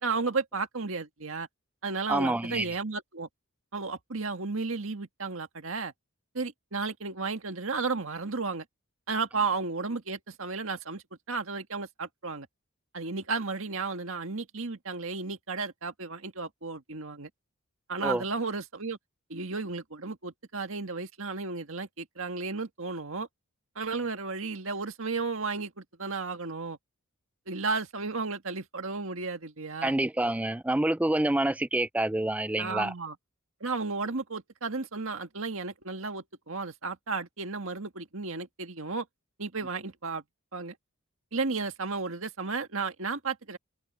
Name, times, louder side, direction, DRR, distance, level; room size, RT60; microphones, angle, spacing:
voice 1, 0.0-1.5 1.8-3.3 3.7-5.9 6.3-8.6 9.1-12.5 12.9-17.3 17.9-19.0 19.3-23.3 23.7-26.8 27.5-29.9 32.6-33.1 33.6-39.0 39.4-40.2 40.5-40.7 41.3-43.6, right 4 dB, 65° right, 1.7 m, -33 dB
voice 2, 2.1-2.7 18.0-18.2 29.8-32.9, right 1 dB, 5° right, 0.3 m, -27 dB
head